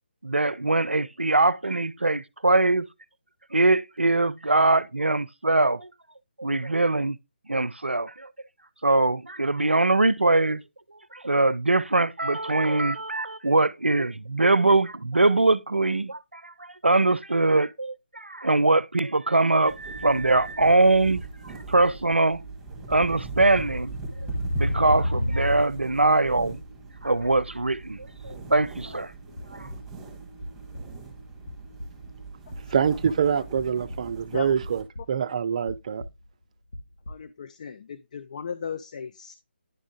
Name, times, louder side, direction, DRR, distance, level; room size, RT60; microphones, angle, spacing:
voice 1, 0.2-2.9 3.5-5.9 6.4-7.2 7.5-8.3 8.8-10.6 11.1-21.2 21.7-22.4 22.9-23.9 24.6-26.6 27.0-29.1, right 2 dB, 90° right, 0.5 m, -22 dB
sound 1, 19.6-34.8, right 3 dB, 10° right, 2.0 m, -40 dB
sound 2, 20.6-21.2 23.5-25.7, equal, 85° left, 2.6 m, -28 dB
sound 3, 28.7-28.9 29.2-30.1 30.4-31.0 31.5-32.1 32.5-33.3 33.6-34.2 34.6-35.4 35.7-37.2, left 1 dB, 60° left, 2.1 m, -42 dB
voice 2, 32.7-36.0, right 7 dB, 40° right, 0.4 m, -25 dB
voice 3, 37.1-39.3, left 6 dB, 40° left, 0.5 m, -37 dB
10.5 x 3.6 x 3.5 m
figure-of-eight pair, 150°, 6 cm